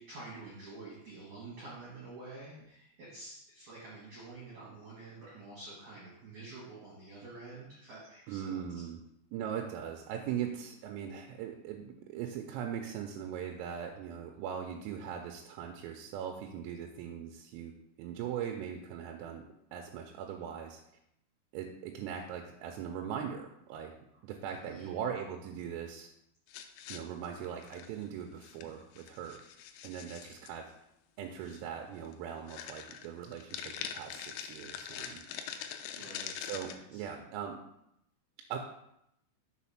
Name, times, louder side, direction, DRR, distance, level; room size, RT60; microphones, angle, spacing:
voice 1, 0.0-8.8 24.6-24.9 36.0-36.3 36.7-37.1, right 3 dB, 60° right, -6 dB, 2.0 m, -48 dB
voice 2, 8.3-9.0 9.3-17.7 18.0-19.4 19.7-20.8 21.5-23.9 24.2-26.1 26.9-29.4 29.8-30.6 31.2-35.2 36.4-37.6 38.5-38.6, right 8 dB, 90° right, 3 dB, 3.3 m, -40 dB
sound 1, 26.5-28.1 28.4-28.7 28.9-30.5 31.5-31.6 32.0-32.1 32.5-36.8, left 8 dB, 85° left, 2.6 m, -43 dB
6.9 x 4.1 x 5.7 m, 0.80 s
omnidirectional pair, 5.8 m